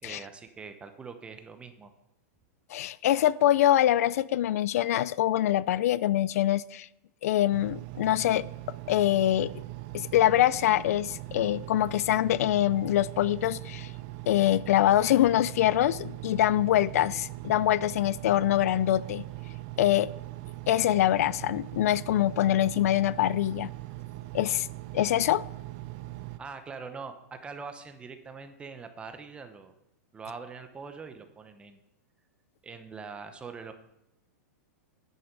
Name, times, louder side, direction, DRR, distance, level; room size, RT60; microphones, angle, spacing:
voice 1, 0.0-1.9 26.4-29.7 30.1-31.8 32.6-33.7, right 5 dB, 10° right, 0.9 m, -43 dB
voice 2, 2.7-6.9 7.2-8.5 8.9-9.5 9.9-13.9 14.3-19.2 19.8-20.1 20.7-23.7 24.3-24.7 24.9-25.4, left 13 dB, 65° left, 0.4 m, -24 dB
Engine, 7.5-26.4, right 17 dB, 40° right, 0.5 m, -41 dB
9.4 x 7.9 x 5.3 m
supercardioid pair, 150°, 9 cm